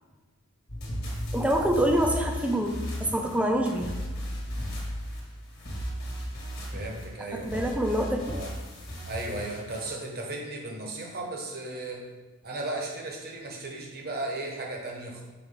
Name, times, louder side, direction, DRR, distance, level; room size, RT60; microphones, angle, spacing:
sound 1, 0.7-9.9, equal, 45° left, 1.5 m, -35 dB
voice 1, 1.3-2.7 3.0-3.9 7.3-8.3, right 1 dB, 5° right, 2 dB, 0.5 m, -26 dB
voice 2, 6.7-7.8 8.2-8.5 9.1-12.0 12.4-15.2, right 2 dB, 45° right, 0 dB, 1.1 m, -35 dB
6.2 x 4.3 x 3.7 m, 1.3 s
head